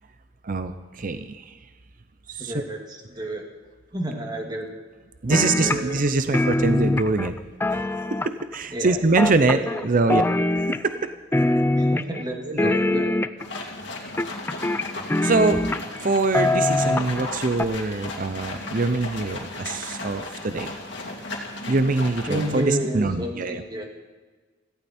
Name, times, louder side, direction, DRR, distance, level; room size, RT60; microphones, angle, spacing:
voice 1, 0.4-1.5 2.3-2.5 5.2-7.4 7.7-10.2 10.6-11.1 12.5-13.0 15.2-15.6 16.0-20.7 21.7-23.6, right 3 dB, 45° right, 10 dB, 0.6 m, -24 dB
voice 2, 2.4-3.5 3.9-4.7 5.3-6.0 8.7-9.0 9.3-9.8 11.8-13.1 22.3-23.9, equal, 20° right, 2 dB, 2.1 m, -30 dB
sound 1, 5.3-6.1 6.3-8.6 9.2-9.8 10.1-11.1 11.3-12.2 12.6-13.6 14.2-16.0 16.3-17.3 17.6-17.7, left 2 dB, 10° left, 0.4 m, -23 dB
sound 2, 13.4-22.6, left 2 dB, 65° left, 2.8 m, -35 dB
17.5 x 15.0 x 4.4 m, 1.4 s
head